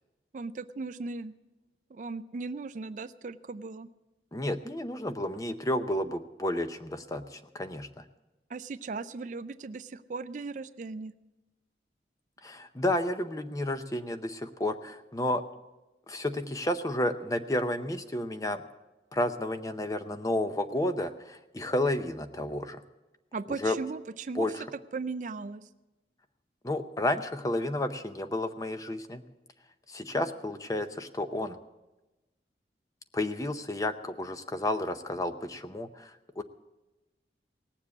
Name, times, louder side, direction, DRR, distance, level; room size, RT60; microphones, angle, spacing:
voice 1, 0.3-1.3 1.9-3.9 8.5-11.1 23.3-24.5 24.9-25.7, right 4 dB, 45° right, 13 dB, 0.4 m, -37 dB
voice 2, 4.3-7.9 12.4-15.4 16.1-18.6 19.1-22.8 23.6-23.8 24.3-24.6 26.6-29.2 29.9-31.6 33.1-36.4, left 1 dB, 20° left, 9 dB, 0.6 m, -31 dB
18.5 x 7.4 x 8.4 m, 1.1 s
head